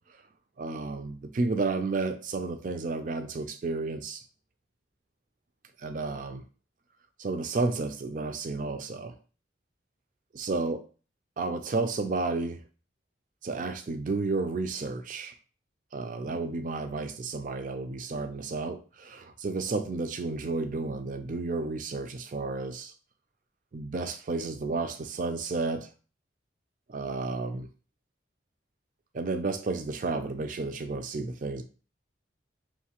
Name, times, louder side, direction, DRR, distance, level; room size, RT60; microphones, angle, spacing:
voice 1, 0.6-4.2 5.8-6.4 7.2-9.1 10.3-10.8 11.4-12.6 13.4-15.3 15.9-22.9 23.7-25.9 26.9-27.7 29.1-31.6, right 3 dB, 45° right, 0.4 m, -32 dB
5.7 x 2.6 x 2.9 m
head